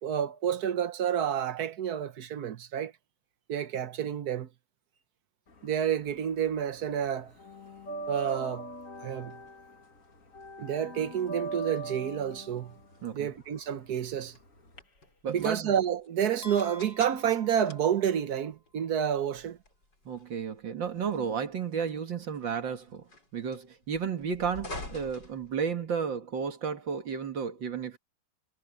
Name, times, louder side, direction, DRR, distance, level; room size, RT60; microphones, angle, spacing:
voice 1, 0.0-2.9 3.5-4.5 5.6-7.3 8.1-8.7 9.0-9.4 10.6-12.7 13.1-14.4 15.3-19.6, right 9 dB, 60° right, 1.3 m, -29 dB
sound 1, 5.5-6.6 6.9-14.8, right 2 dB, 45° left, 2.5 m, -41 dB
sound 2, 6.8-26.1, left 2 dB, 65° left, 5.9 m, -51 dB
voice 2, 15.2-15.7 20.1-23.1 23.3-28.0, right 6 dB, 80° right, 2.4 m, -33 dB
sound 3, 16.4-18.6, equal, 10° left, 5.0 m, -49 dB
omnidirectional pair, 2.0 m